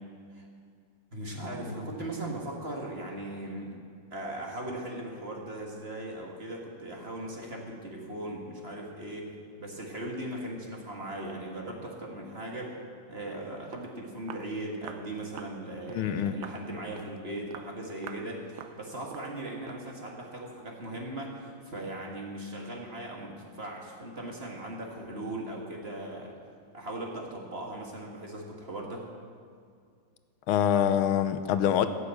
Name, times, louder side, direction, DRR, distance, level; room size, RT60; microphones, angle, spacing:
voice 1, 1.1-3.7 4.1-9.3 9.6-12.7 13.1-26.3 26.7-29.0, right 1 dB, 30° right, -1 dB, 1.8 m, -38 dB
Walk footsteps, 13.4-13.5 13.7-13.9 14.3-14.5 14.8-15.1 15.4-15.6 15.9-16.1 16.4-16.6 17.0-17.2 17.5-17.7 18.0-18.3 18.6-18.8 19.1-19.3 19.7-19.9, right 9 dB, 75° right, 1.3 m, -45 dB
voice 2, 15.9-16.4 30.5-31.9, left 9 dB, 90° left, 10 dB, 1.6 m, -25 dB
15.0 x 6.8 x 8.2 m, 2.1 s
omnidirectional pair, 2.3 m